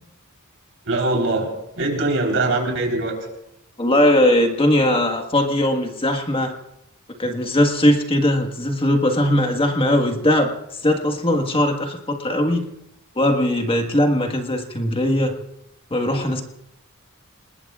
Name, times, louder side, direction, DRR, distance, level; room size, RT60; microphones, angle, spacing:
voice 1, 0.9-1.5 1.7-3.1, right 2 dB, 65° right, 1 dB, 3.9 m, -22 dB
voice 2, 3.8-6.5 7.2-10.5 10.8-12.6 13.1-15.3 15.9-16.4, left 1 dB, 25° left, 4 dB, 1.5 m, -19 dB
28.5 x 20.0 x 2.4 m, 0.84 s
head